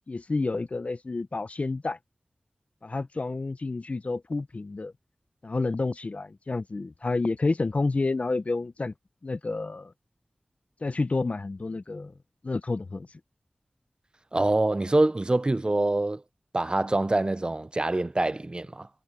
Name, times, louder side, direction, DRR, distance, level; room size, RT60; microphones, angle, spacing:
voice 1, 0.1-2.0 2.8-4.9 5.4-8.9 9.2-9.9 10.8-12.1 12.4-13.1, left 3 dB, 50° left, 0.6 m, -29 dB
voice 2, 14.3-16.2 16.5-18.9, right 2 dB, 30° right, 0.5 m, -25 dB
wide cardioid pair, 60°, 3 cm